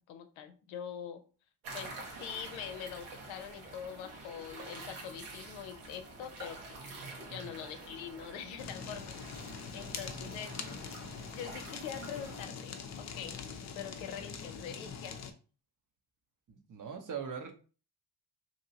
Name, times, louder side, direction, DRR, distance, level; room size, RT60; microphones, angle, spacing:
voice 1, 0.1-1.2 1.7-6.8 7.2-9.1 9.7-10.6 11.3-13.4 13.7-15.2, left 8 dB, 70° left, 8 dB, 0.7 m, -44 dB
sound 1, 1.6-12.5, right 2 dB, 70° right, 1.2 m, -48 dB
Fire, 8.6-15.3, left 6 dB, 35° left, 0.6 m, -43 dB
voice 2, 16.5-17.5, right 6 dB, 40° right, 5 dB, 0.9 m, -42 dB
2.9 x 2.7 x 2.7 m, 0.36 s
hypercardioid pair, 55°, 50 cm